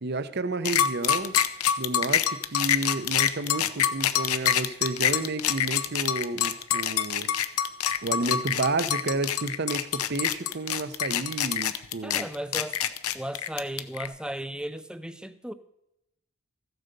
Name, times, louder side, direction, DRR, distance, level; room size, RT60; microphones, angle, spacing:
voice 1, 0.0-1.3 1.8-7.3 8.0-12.3, right 3 dB, 50° right, 0.7 m, -31 dB
sound 1, 0.7-14.1, left 10 dB, 85° left, 0.8 m, -26 dB
voice 2, 12.0-12.8 13.1-15.5, right 1 dB, 5° right, 0.5 m, -35 dB
14.5 x 7.9 x 6.7 m
head